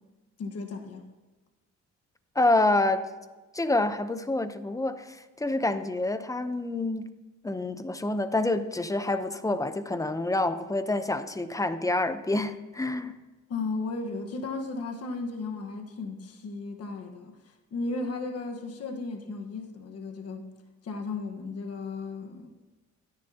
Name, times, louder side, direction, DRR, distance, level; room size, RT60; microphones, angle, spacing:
voice 1, 0.4-1.0 13.5-20.5 20.8-22.5, left 3 dB, 55° left, 1.4 m, -35 dB
voice 2, 2.3-3.1 3.5-7.0 7.4-13.1, left 2 dB, 10° left, 0.8 m, -27 dB
23.0 x 10.0 x 2.9 m
cardioid pair, 90°, 30 cm